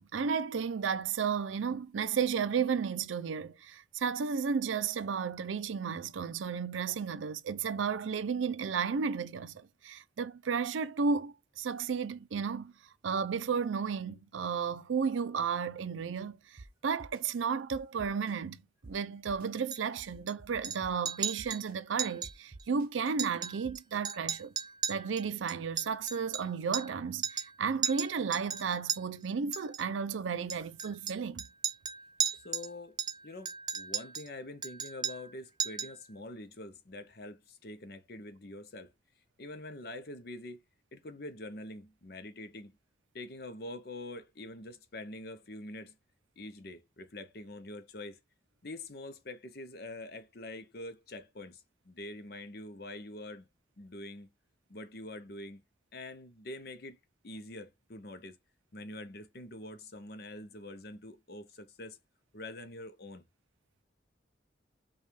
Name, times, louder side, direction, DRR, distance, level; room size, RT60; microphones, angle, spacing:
voice 1, 0.0-12.7 13.0-24.5 24.9-31.5, right 6 dB, 90° right, 0.5 m, -33 dB
sound 1, 16.6-16.7 17.0-17.2 17.7-18.3 18.8-18.9 19.3-19.5 20.0-20.9 21.4-21.7 22.2-22.9 23.6-24.0, right 3 dB, 45° right, 0.7 m, -49 dB
Chink clink, 19.7-20.3 20.6-20.8 21.0-21.6 22.0-22.3 22.6-22.7 23.1-23.8 24.0-27.0 27.2-27.5 27.8-29.0 29.5-29.8 30.5-32.7 33.0-34.3 34.6-35.3 35.6-36.0, right 7 dB, 20° right, 0.4 m, -36 dB
voice 2, 32.3-33.0 33.2-38.9 39.4-40.6 40.9-42.7 43.1-46.0 46.4-48.2 48.6-53.5 53.8-54.3 54.7-55.6 55.9-57.0 57.2-58.4 58.7-62.0 62.3-63.2, left 1 dB, 55° left, 0.7 m, -45 dB
5.3 x 2.3 x 3.1 m
head